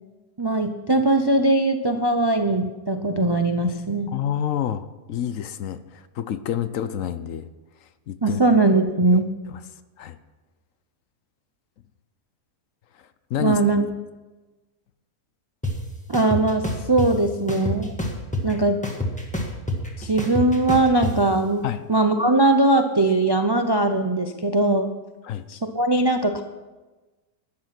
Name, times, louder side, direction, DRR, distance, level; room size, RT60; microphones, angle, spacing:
voice 1, 0.4-4.1 8.2-9.3 13.4-13.8 16.1-18.0 18.4-18.8 20.0-24.9 25.5-26.4, right 2 dB, 35° right, 6 dB, 0.3 m, -20 dB
voice 2, 4.1-7.5 8.1-8.4 9.5-9.6 10.0-10.2 13.3-13.6 21.6-21.8 25.2-25.4, left 10 dB, 65° left, 13 dB, 1.0 m, -28 dB
sound 1, 15.6-15.7 16.1-17.1 17.5-18.5 18.8-21.1, left 1 dB, 5° left, 1.6 m, -26 dB
13.0 x 9.7 x 5.9 m, 1.2 s
omnidirectional pair, 1.6 m